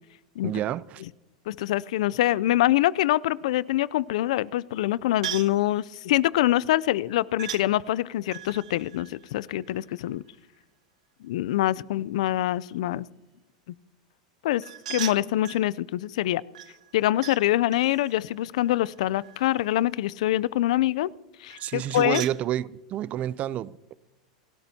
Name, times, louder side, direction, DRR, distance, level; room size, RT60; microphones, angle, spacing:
voice 1, 0.4-1.0 21.6-23.9, right 12 dB, 40° right, 0.5 m, -29 dB
voice 2, 1.5-10.2 11.2-13.1 14.4-14.6 14.9-16.4 16.9-21.1 21.4-22.2, left 14 dB, 70° left, 0.4 m, -25 dB
sound 1, 5.2-5.6 7.4-7.7 8.3-10.1 14.6-15.7 16.5-17.4 17.7-19.6 21.5-22.4, right 12 dB, 80° right, 0.6 m, -39 dB
28.5 x 13.5 x 2.8 m
hypercardioid pair, 105°, 4 cm